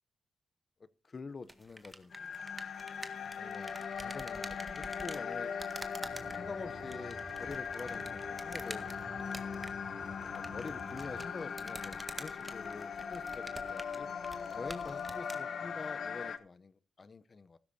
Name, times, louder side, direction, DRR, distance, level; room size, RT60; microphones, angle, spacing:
voice 1, 1.1-2.4 3.3-5.5 6.3-8.9 10.3-14.1 14.5-17.6, left 4 dB, 45° left, 0.8 m, -46 dB
sound 1, 1.4-15.4, right 1 dB, 15° right, 1.7 m, -48 dB
sound 2, 2.1-16.4, left 6 dB, 70° left, 1.1 m, -40 dB
sound 3, 6.0-11.2, right 2 dB, 40° right, 3.5 m, -52 dB
15.5 x 13.0 x 2.7 m
cardioid pair, 75°, 0 cm